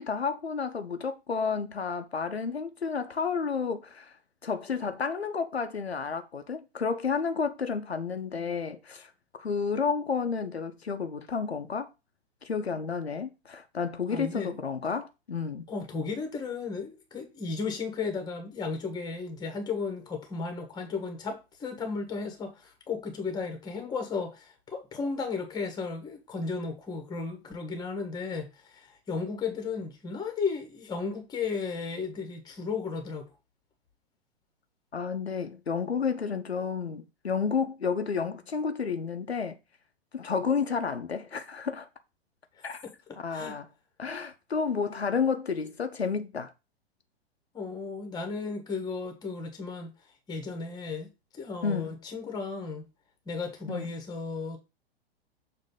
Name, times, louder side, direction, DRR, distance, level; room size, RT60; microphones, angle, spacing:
voice 1, 0.0-4.1 4.4-9.1 9.4-11.9 12.4-15.6 34.9-39.6 40.1-41.9 42.6-42.8 43.2-43.7 44.0-46.5 51.6-51.9 53.7-53.9, left 5 dB, 80° left, 0.8 m, -31 dB
voice 2, 14.1-14.6 15.7-33.3 42.6-43.6 47.5-49.9 50.3-52.8 53.2-54.6, left 4 dB, 15° left, 1.3 m, -34 dB
6.7 x 2.9 x 5.4 m
figure-of-eight pair, 105°, 31 cm